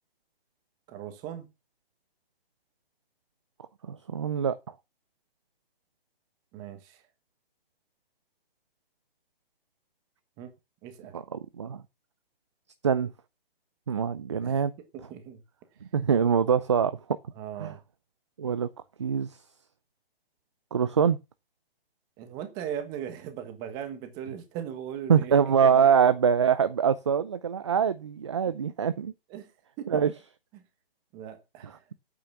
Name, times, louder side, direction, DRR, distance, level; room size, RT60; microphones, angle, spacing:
voice 1, 0.9-1.5 6.5-7.0 10.4-10.5 10.8-11.2 14.4-14.6 14.9-15.4 17.3-17.8 22.2-25.3 25.6-26.0 28.5-28.6 29.3-29.5 29.8-30.1 30.5-30.6 31.1-31.8, right 9 dB, 10° right, 1.3 m, -39 dB
voice 2, 3.9-4.6 11.1-11.8 12.8-13.1 13.9-14.7 15.9-17.0 17.6-17.7 18.4-18.7 19.0-19.3 20.7-21.2 25.1-29.1 29.9-30.1, right 7 dB, 30° right, 0.5 m, -24 dB
8.9 x 8.8 x 6.9 m
hypercardioid pair, 175°, 30 cm